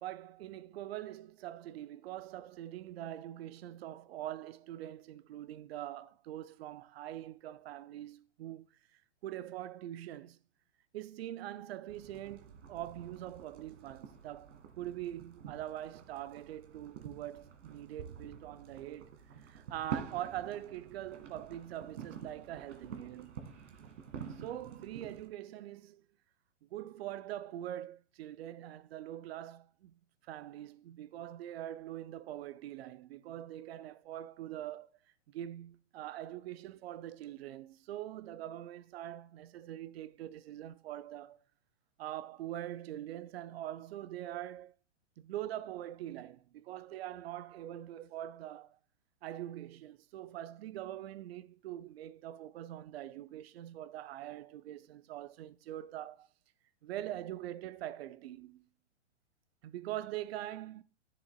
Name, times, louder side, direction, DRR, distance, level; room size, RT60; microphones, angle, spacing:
voice 1, 0.0-10.4 10.9-23.5 24.3-26.1 26.6-30.0 30.3-34.9 35.3-41.4 42.0-44.7 45.2-48.8 49.2-56.3 56.8-58.7 59.6-60.8, right 13 dB, 55° right, 0.7 m, -43 dB
sound 1, 11.9-25.3, right 7 dB, 70° right, 2.1 m, -48 dB
13.0 x 7.0 x 2.3 m
hypercardioid pair, 135°, 38 cm